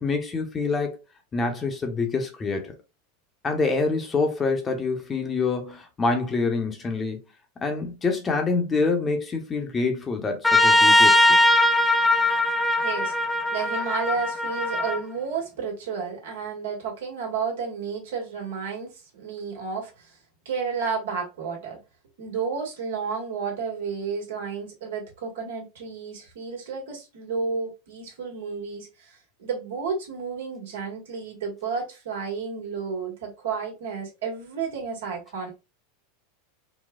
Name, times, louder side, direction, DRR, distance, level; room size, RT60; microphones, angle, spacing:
voice 1, 0.0-1.0 1.3-2.7 3.4-7.2 7.6-11.5, left 4 dB, 25° left, 0.8 m, -26 dB
Trumpet, 10.4-15.0, left 1 dB, 5° left, 0.4 m, -20 dB
voice 2, 12.8-13.1 13.5-20.2 20.4-21.8 22.2-35.5, right 5 dB, 80° right, 1.4 m, -32 dB
4.0 x 2.2 x 2.3 m
hypercardioid pair, 110°, 0 cm